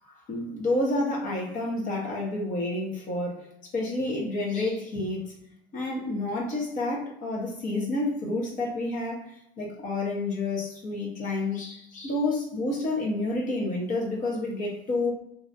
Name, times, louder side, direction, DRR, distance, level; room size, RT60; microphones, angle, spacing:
voice 1, 0.1-3.5 3.7-5.3 5.7-15.1, left 2 dB, 50° left, -1 dB, 1.0 m, -29 dB
2.8 x 2.4 x 2.6 m, 0.75 s
hypercardioid pair, 75°, 16 cm